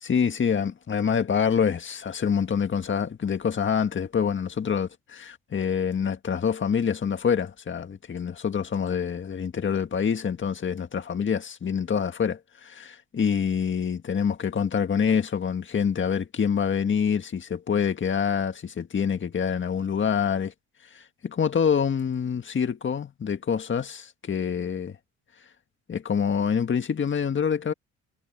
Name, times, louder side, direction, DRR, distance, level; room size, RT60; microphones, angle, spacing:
voice 1, 0.0-4.9 5.3-20.5 20.9-25.0 25.9-27.7, left 7 dB, 40° left, 1.8 m, -26 dB
cardioid pair, 90°, 30 cm